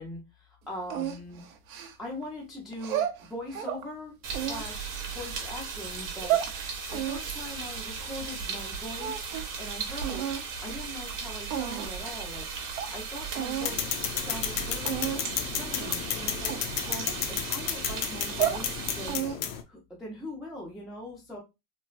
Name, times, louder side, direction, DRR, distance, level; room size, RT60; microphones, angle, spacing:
voice 1, 0.0-1.4 2.0-9.3 9.6-10.2 10.6-12.5 12.8-16.6 16.9-19.3 19.7-21.4, left 1 dB, ahead, -4 dB, 0.4 m, -41 dB
sound 1, 0.9-2.2 2.7-3.8 4.3-5.4 6.0-6.5 6.9-8.7 8.9-9.6 10.0-10.4 11.1-11.2 11.5-12.0 12.4-12.5 12.8-12.9 13.3-13.7 14.1-14.3 14.8-15.2 15.7-16.0 16.5-17.7 18.1-18.7 19.1-19.6, right 11 dB, 85° right, 0.7 m, -33 dB
sound 2, 4.2-19.1, right 5 dB, 30° right, 0.7 m, -37 dB
sound 3, 13.6-19.6, left 10 dB, 70° left, 0.6 m, -32 dB
3.1 x 2.3 x 2.4 m, 0.24 s
supercardioid pair, 125°, 42 cm